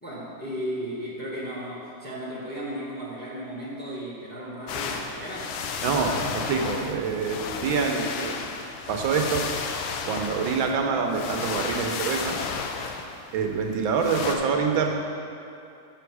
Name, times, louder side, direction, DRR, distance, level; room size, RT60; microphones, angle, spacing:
voice 1, 0.0-5.5, equal, 5° left, -6 dB, 1.1 m, -35 dB
sound 1, 4.7-14.4, left 5 dB, 90° left, 1.4 m, -33 dB
voice 2, 5.8-8.4 8.9-9.4 10.1-12.4 13.3-14.9, right 5 dB, 80° right, 3 dB, 1.5 m, -26 dB
7.0 x 6.6 x 4.7 m, 2.5 s
omnidirectional pair, 2.1 m